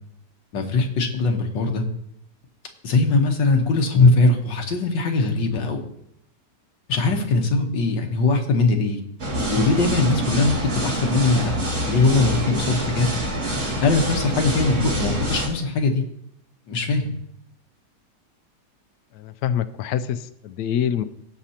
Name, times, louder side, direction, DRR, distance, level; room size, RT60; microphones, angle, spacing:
voice 1, 0.5-1.8 2.8-5.8 6.9-9.0 9.3-11.5 11.9-13.1 13.8-16.0 16.7-17.1, left 3 dB, 90° left, 3 dB, 1.9 m, -20 dB
sound 1, 9.2-15.5, right 1 dB, 55° right, 2.8 m, -26 dB
voice 2, 19.1-21.0, left 9 dB, 70° left, 10 dB, 1.0 m, -25 dB
17.5 x 6.7 x 2.9 m, 0.75 s
omnidirectional pair, 1.9 m